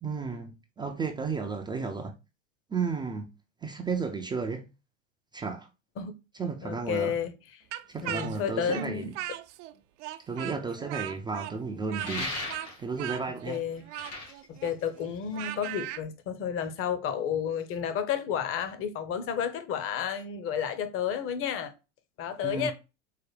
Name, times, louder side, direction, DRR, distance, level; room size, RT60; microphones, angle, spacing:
voice 1, 0.0-2.1 2.7-3.3 3.6-4.6 5.3-5.7 6.3-7.2 7.9-9.1 10.3-12.4 12.8-13.6 22.4-22.7, right 5 dB, 15° right, 0.3 m, -33 dB
voice 2, 6.6-7.3 8.0-9.1 13.5-13.9 14.5-21.7 22.2-22.7, left 8 dB, 35° left, 0.7 m, -31 dB
Speech, 7.7-9.7 10.0-16.0, right 14 dB, 70° right, 0.5 m, -38 dB
sound 1, 12.0-13.0 13.8-15.5, left 2 dB, 75° left, 2.4 m, -37 dB
4.7 x 2.1 x 3.2 m
hypercardioid pair, 110°, 37 cm